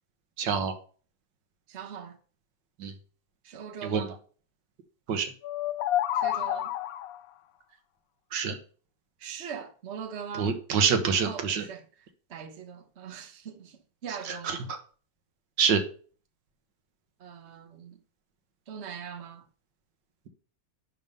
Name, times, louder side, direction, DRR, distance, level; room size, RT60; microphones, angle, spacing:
voice 1, 0.4-0.7 2.8-2.9 3.8-4.1 5.1-5.3 8.3-8.6 10.4-11.6 14.3-14.8 15.6-15.8, right 6 dB, 85° right, 1.8 m, -26 dB
voice 2, 1.7-2.2 3.4-4.2 6.1-6.7 9.2-10.6 11.1-11.8 12.3-14.7 17.2-18.0 18.7-19.4, right 7 dB, 45° right, 1.2 m, -41 dB
sound 1, 5.4-7.3, left 12 dB, 70° left, 0.9 m, -29 dB
11.0 x 3.7 x 5.4 m
omnidirectional pair, 1.9 m